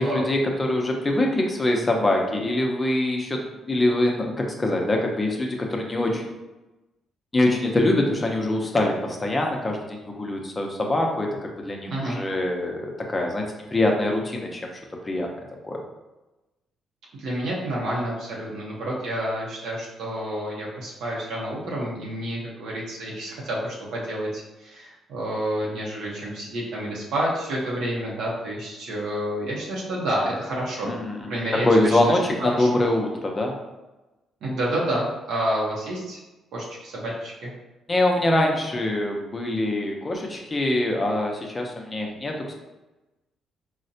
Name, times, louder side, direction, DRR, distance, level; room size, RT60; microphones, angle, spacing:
voice 1, 0.0-6.3 7.3-14.7 15.0-15.3 15.6-15.8 30.8-33.5 37.9-42.5, left 1 dB, 25° left, 1 dB, 0.6 m, -24 dB
voice 2, 11.8-12.2 17.2-30.9 31.3-32.1 32.6-32.7 34.4-36.2 36.5-37.5, right 1 dB, 80° right, -5 dB, 0.7 m, -29 dB
3.8 x 2.1 x 2.7 m, 1.1 s
cardioid pair, 90°, 0 cm